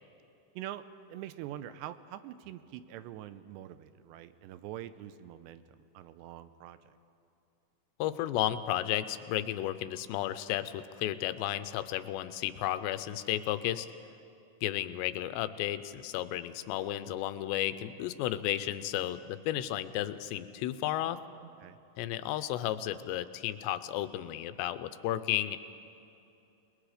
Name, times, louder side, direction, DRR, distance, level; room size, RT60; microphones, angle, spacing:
voice 1, 0.6-7.0 21.4-21.8, right 12 dB, 85° right, 12 dB, 2.9 m, -45 dB
voice 2, 8.0-13.9 14.6-21.2 22.0-25.6, left 13 dB, 85° left, 13 dB, 2.9 m, -33 dB
28.5 x 20.0 x 5.0 m, 2.8 s
omnidirectional pair, 5.0 m